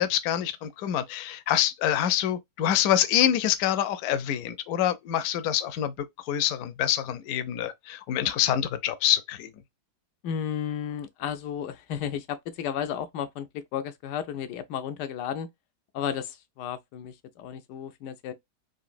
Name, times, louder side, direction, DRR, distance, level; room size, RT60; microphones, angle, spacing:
voice 1, 0.0-5.9 6.3-9.5, left 11 dB, 70° left, 1.0 m, -26 dB
voice 2, 10.2-15.5 15.9-18.3, left 8 dB, 90° left, 1.2 m, -33 dB
3.9 x 2.5 x 2.5 m
omnidirectional pair, 1.8 m